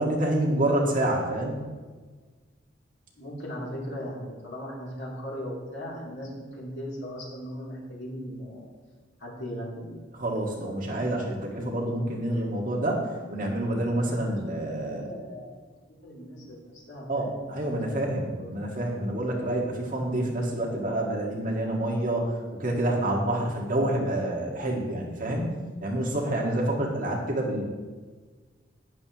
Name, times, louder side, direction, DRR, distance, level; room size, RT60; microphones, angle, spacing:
voice 1, 0.0-1.6 10.2-15.1 17.1-27.6, right 1 dB, 45° right, -2 dB, 1.8 m, -28 dB
voice 2, 3.1-8.7 9.2-9.9 14.2-15.6 15.9-17.4 17.7-18.5, equal, 70° left, -5 dB, 3.0 m, -38 dB
11.0 x 10.0 x 3.0 m, 1.4 s
head